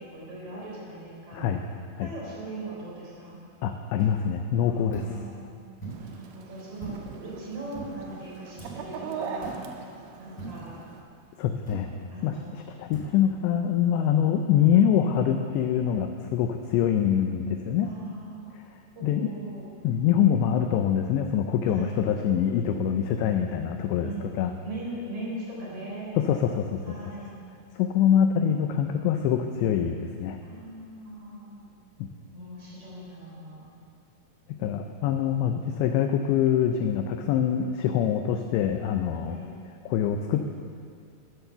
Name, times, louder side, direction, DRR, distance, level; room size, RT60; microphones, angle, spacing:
voice 1, 0.0-1.4 2.0-3.4 4.7-5.5 6.0-9.6 10.2-10.8 12.1-12.5 13.9-14.1 17.8-18.5 18.9-19.7 21.6-22.0 24.0-26.1 26.8-27.4 30.4-31.7 32.3-33.7 39.2-39.5, right 2 dB, 35° right, -6 dB, 4.3 m, -40 dB
voice 2, 3.6-5.1 11.4-11.9 12.2-12.4 12.8-17.9 19.0-19.3 19.8-24.5 26.2-27.0 27.8-30.4 32.0-32.1 34.6-39.4 39.9-40.5, left 9 dB, 85° left, 6 dB, 2.5 m, -24 dB
sound 1, 4.0-4.2 4.9-5.2 5.8-6.1 6.8-7.2 7.7-8.0 8.6-8.9 9.4-9.7 10.4-10.7 11.7-12.0 12.9-13.2, right 3 dB, 10° left, 2.2 m, -40 dB
Chicken rooster, 5.9-11.0, right 6 dB, 90° right, 3.2 m, -40 dB
14.5 x 7.0 x 6.9 m, 2.4 s
omnidirectional pair, 5.5 m